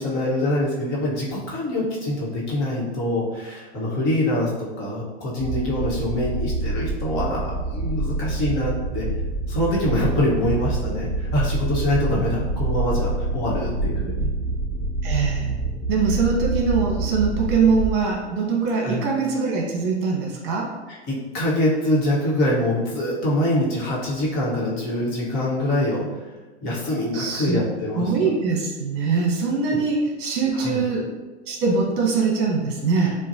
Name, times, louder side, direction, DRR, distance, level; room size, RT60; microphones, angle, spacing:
voice 1, 0.0-9.1 9.5-14.3 18.7-19.0 20.9-26.1 26.6-28.1 30.5-30.8, left 1 dB, 35° left, -5 dB, 1.4 m, -24 dB
sound 1, 5.4-17.9, right 2 dB, 5° right, 0.4 m, -26 dB
voice 2, 15.0-15.6 15.9-20.7 27.1-27.6 28.0-31.1 31.5-33.2, right 4 dB, 45° right, -2 dB, 1.2 m, -22 dB
7.2 x 2.5 x 2.8 m, 1.3 s
hypercardioid pair, 130°, 35 cm